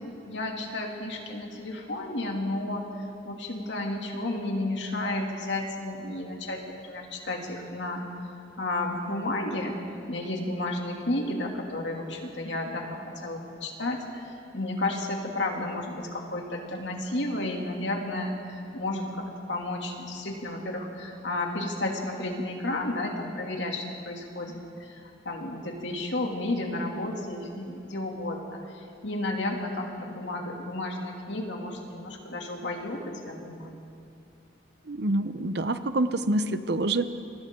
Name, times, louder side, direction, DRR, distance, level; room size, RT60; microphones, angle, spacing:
voice 1, 0.0-8.1 8.6-9.8 10.1-33.8, left 2 dB, 75° left, 1 dB, 2.7 m, -32 dB
voice 2, 34.9-37.1, right 2 dB, 60° right, 11 dB, 0.8 m, -26 dB
29.0 x 24.5 x 3.8 m, 2.6 s
head